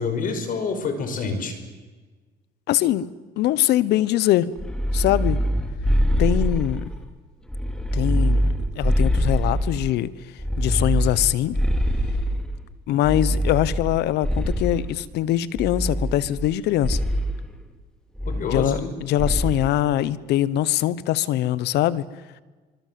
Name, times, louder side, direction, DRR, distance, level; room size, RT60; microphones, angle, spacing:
voice 1, 0.0-1.5 18.3-18.9, left 4 dB, 55° left, 7 dB, 5.6 m, -27 dB
voice 2, 2.7-3.1 3.4-4.5 4.9-5.4 6.2-6.9 7.9-10.1 10.6-11.6 12.9-17.0 18.5-22.0, left 13 dB, 80° left, 18 dB, 1.1 m, -22 dB
sound 1, 4.6-7.0 7.5-9.9 10.4-12.6 13.0-14.9 15.6-16.5 16.8-17.3 18.2-18.9 19.2-19.6, equal, 5° left, 3.0 m, -24 dB
25.0 x 25.0 x 7.8 m, 1.3 s
cardioid pair, 110°, 17 cm